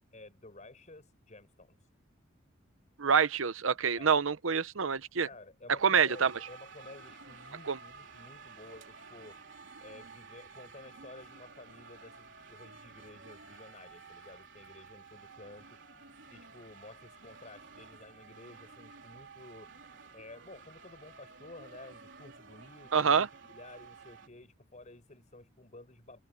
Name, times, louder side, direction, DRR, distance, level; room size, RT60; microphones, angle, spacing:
voice 1, 0.1-1.8 3.9-4.1 5.2-9.4 9.8-15.8 16.3-19.7 20.1-26.2, left 2 dB, 35° left, 6.6 m, -52 dB
voice 2, 3.0-5.3 5.8-6.3 7.7-7.8 22.9-23.3, right 6 dB, 85° right, 0.9 m, -26 dB
sound 1, 6.1-24.3, right 4 dB, 65° right, 4.2 m, -52 dB
head